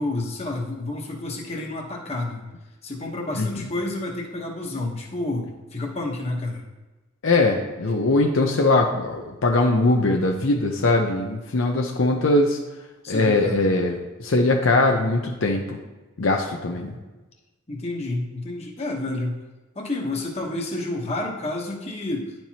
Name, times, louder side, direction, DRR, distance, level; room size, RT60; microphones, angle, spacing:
voice 1, 0.0-2.5 2.8-6.6 13.0-13.6 16.7-16.9 17.7-19.4 19.7-22.3, left 2 dB, 30° left, -1 dB, 1.0 m, -30 dB
voice 2, 7.2-12.6 13.1-15.8 16.2-16.9, left 2 dB, 70° left, 1 dB, 0.6 m, -21 dB
10.5 x 4.5 x 2.9 m, 1.1 s
head